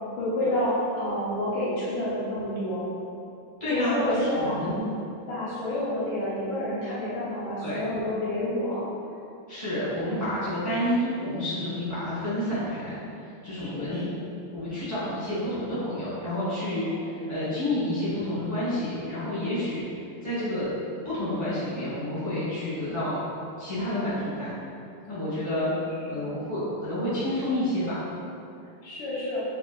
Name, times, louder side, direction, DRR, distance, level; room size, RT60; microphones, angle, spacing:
voice 1, 0.1-2.8 3.7-4.5 5.3-8.9 13.5-14.2 16.8-17.0 25.7-25.8 26.1-26.3 28.8-29.4, left 1 dB, 85° left, -10 dB, 1.5 m, -29 dB
voice 2, 3.6-4.9 7.6-7.8 9.5-12.9 13.4-14.1 14.5-19.8 20.2-20.7 21.0-23.2 23.6-24.5 25.0-25.7 26.1-28.0, left 1 dB, 20° right, -13 dB, 0.8 m, -29 dB
3.6 x 2.3 x 2.4 m, 2.5 s
omnidirectional pair, 2.1 m